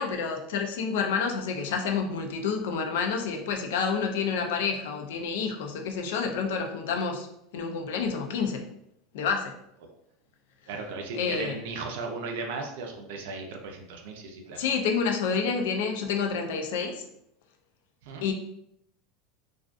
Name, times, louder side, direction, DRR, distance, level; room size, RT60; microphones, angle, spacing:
voice 1, 0.0-7.3 7.5-8.7 9.1-9.5 11.1-11.6 14.6-17.1 18.2-18.3, left 5 dB, 85° left, 4 dB, 0.4 m, -29 dB
voice 2, 10.7-14.6 18.0-18.2, right 4 dB, 80° right, 3 dB, 0.5 m, -36 dB
2.3 x 2.3 x 2.4 m, 0.76 s
supercardioid pair, 140°, 0 cm